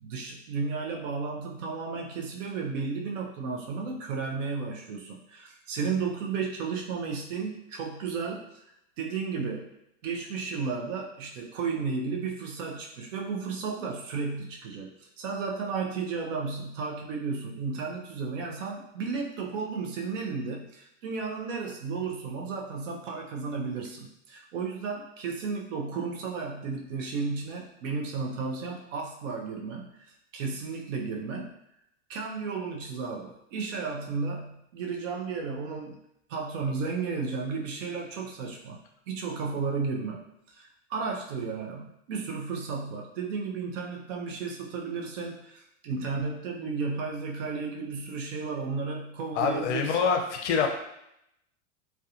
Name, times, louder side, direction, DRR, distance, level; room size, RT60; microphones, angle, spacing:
voice 1, 0.0-8.6 9.0-9.7 10.0-31.5 32.1-36.0 36.3-38.8 39.1-50.0, right 4 dB, 75° right, 0 dB, 0.6 m, -33 dB
voice 2, 49.4-50.7, left 6 dB, 65° left, 3 dB, 0.5 m, -25 dB
2.7 x 2.2 x 2.4 m, 0.79 s
supercardioid pair, 175°, 38 cm